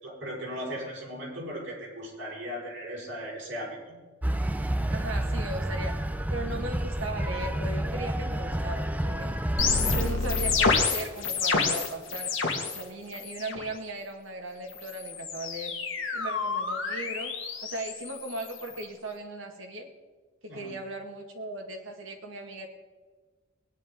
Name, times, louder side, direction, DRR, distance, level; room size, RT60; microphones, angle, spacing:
voice 1, 0.0-3.9 9.8-10.0 20.5-20.7, equal, 65° right, -4 dB, 5.2 m, -37 dB
sound 1, 4.2-10.1, right 1 dB, 10° right, 0.4 m, -29 dB
voice 2, 4.9-5.9 6.3-9.4 9.8-12.3 12.7-15.8 16.1-17.3 17.6-19.9 20.4-22.7, right 2 dB, 85° right, 3 dB, 1.9 m, -37 dB
sound 2, 9.6-12.8 13.1-13.7 14.7-18.8, left 4 dB, 75° left, 1.7 m, -29 dB
20.0 x 9.9 x 3.8 m, 1.3 s
head